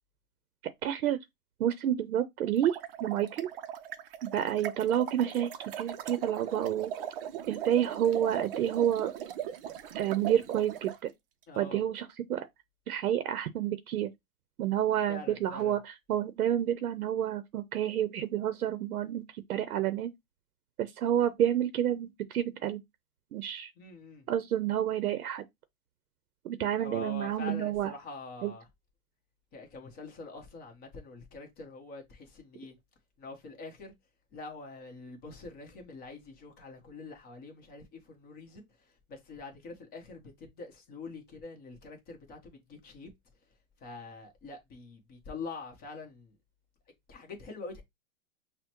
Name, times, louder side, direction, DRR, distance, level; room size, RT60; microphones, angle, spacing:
voice 1, 0.8-1.2 1.6-3.5 4.2-5.5 5.8-6.9 7.5-9.1 9.9-11.1 11.6-12.5 12.9-14.1 14.6-20.1 20.8-22.8 23.3-23.7 24.3-25.4 26.4-27.9 28.4-28.5, right 10 dB, 80° right, 0.7 m, -29 dB
sound 1, 2.5-11.0, right 10 dB, 40° right, 0.6 m, -39 dB
voice 2, 11.5-11.8 15.1-15.7 23.8-24.2 26.8-28.7 29.5-32.7 33.2-33.9 34.3-38.7 39.1-43.1 43.8-46.3 47.1-47.8, left 3 dB, 20° left, 1.0 m, -45 dB
5.6 x 2.2 x 3.0 m
hypercardioid pair, 150°, 43 cm